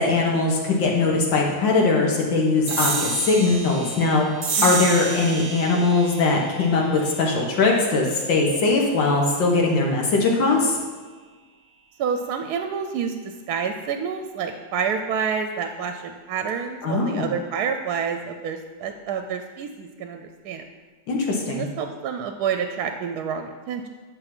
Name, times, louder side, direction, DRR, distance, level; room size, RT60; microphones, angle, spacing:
voice 1, 0.0-4.3 4.6-10.8 16.8-17.3 21.1-21.7, left 3 dB, 85° left, -1 dB, 2.0 m, -21 dB
sound 1, 2.7-9.5, right 4 dB, 40° right, 0.7 m, -31 dB
voice 2, 12.0-20.7 21.5-23.9, right 6 dB, 70° right, 6 dB, 1.0 m, -28 dB
11.0 x 3.6 x 6.0 m, 1.4 s
omnidirectional pair, 2.0 m